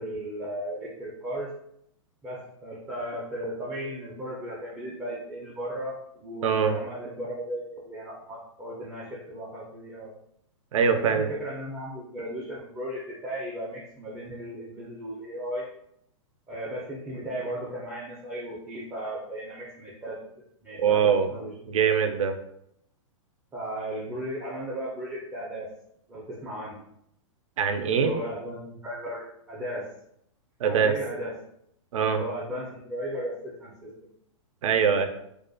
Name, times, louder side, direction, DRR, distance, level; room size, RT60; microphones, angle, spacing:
voice 1, 0.0-1.5 2.2-10.1 10.9-15.7 16.5-20.2 20.6-21.5 23.5-25.7 26.1-26.8 27.8-29.9 30.6-31.3 32.0-33.9, equal, 10° right, -6 dB, 0.4 m, -36 dB
voice 2, 6.4-6.8 10.7-11.3 20.8-21.3 21.7-22.3 27.6-28.1 30.6-30.9 31.9-32.2 34.6-35.0, right 7 dB, 75° right, 7 dB, 0.4 m, -22 dB
2.3 x 2.1 x 2.5 m, 0.72 s
hypercardioid pair, 135°, 17 cm